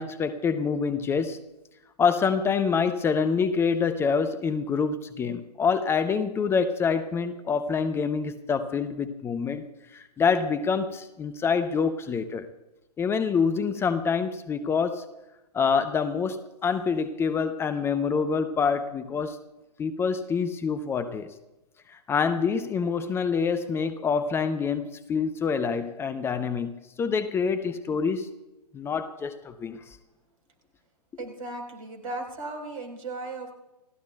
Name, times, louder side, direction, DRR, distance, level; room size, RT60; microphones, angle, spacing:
voice 1, 0.0-1.4 2.0-9.6 9.9-12.5 13.0-15.1 15.5-19.4 19.8-21.3 21.9-28.3 28.7-29.8, left 5 dB, 10° left, 0.7 m, -26 dB
voice 2, 31.2-33.5, right 2 dB, 55° right, 4.4 m, -36 dB
29.0 x 16.0 x 2.3 m
figure-of-eight pair, 120°, 21 cm